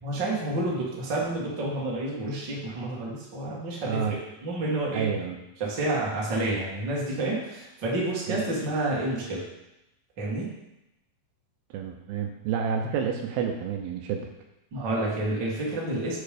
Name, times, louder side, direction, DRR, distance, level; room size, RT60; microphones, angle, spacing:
voice 1, 0.0-5.1 5.6-9.4 10.2-10.5 14.7-16.2, right 2 dB, 45° right, -4 dB, 1.5 m, -29 dB
voice 2, 4.9-5.4 8.3-8.4 11.7-14.3, right 7 dB, 80° right, 3 dB, 2.4 m, -29 dB
7.2 x 4.7 x 5.0 m, 0.90 s
omnidirectional pair, 4.6 m